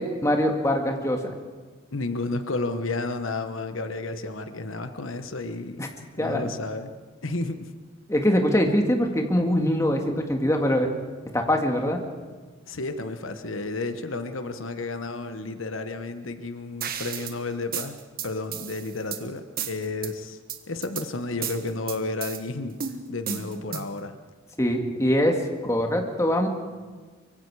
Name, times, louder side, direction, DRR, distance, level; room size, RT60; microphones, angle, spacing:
voice 1, 0.0-1.3 5.8-5.9 6.2-6.5 8.1-10.9 11.3-12.0 24.6-26.5, equal, 15° left, 3 dB, 2.0 m, -23 dB
voice 2, 1.9-5.9 6.2-6.9 7.2-7.7 12.6-18.0 18.2-20.4 20.7-22.8 23.1-24.2, left 3 dB, 85° left, 9 dB, 1.3 m, -32 dB
sound 1, 16.8-17.4 17.7-19.2 19.6-20.1 20.5-21.1 21.4-22.4 22.8-24.0, right 7 dB, 50° right, 1.5 m, -33 dB
24.0 x 24.0 x 4.9 m, 1.4 s
head